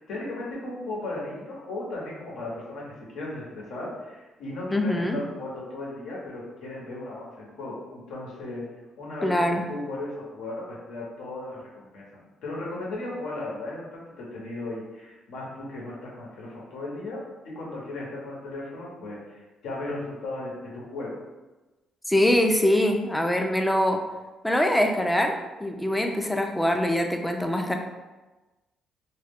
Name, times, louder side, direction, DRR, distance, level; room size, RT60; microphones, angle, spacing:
voice 1, 0.0-8.6 9.0-17.2 17.4-21.2, left 2 dB, 80° left, -4 dB, 0.8 m, -36 dB
voice 2, 4.7-5.2 9.2-9.6 22.1-24.0 24.4-27.7, left 1 dB, 5° left, 3 dB, 0.3 m, -23 dB
2.2 x 2.0 x 3.5 m, 1.1 s
cardioid pair, 90°, 0 cm